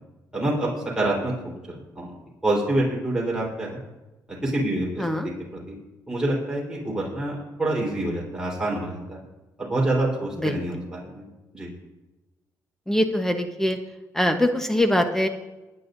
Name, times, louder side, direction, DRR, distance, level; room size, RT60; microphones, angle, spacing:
voice 1, 0.3-0.7 0.9-1.3 1.9-2.1 2.4-3.8 4.4-5.0 5.7-5.8 6.1-9.2 9.6-11.2 11.5-11.7, right 1 dB, 10° right, -4 dB, 4.2 m, -26 dB
voice 2, 12.9-13.8 14.1-15.3, left 1 dB, 5° left, 6 dB, 1.1 m, -22 dB
22.0 x 9.9 x 2.7 m, 1.1 s
cardioid pair, 100°, 7 cm